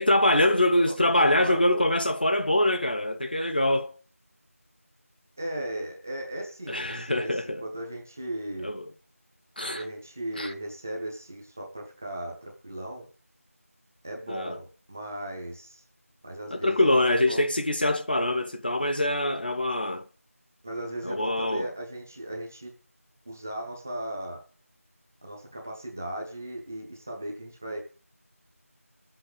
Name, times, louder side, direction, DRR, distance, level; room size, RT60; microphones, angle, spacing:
voice 1, 0.0-3.9 6.7-7.6 8.6-8.9 9.6-9.8 10.3-10.5 14.3-14.6 16.5-20.1 21.0-21.7, left 1 dB, 40° left, 1.0 m, -24 dB
voice 2, 1.0-1.9 5.4-8.7 9.6-13.1 14.0-15.8 16.2-17.4 20.6-22.7 23.3-24.4 25.2-27.8, right 1 dB, 10° right, 0.9 m, -37 dB
15.0 x 7.9 x 8.3 m
figure-of-eight pair, 175°, 8 cm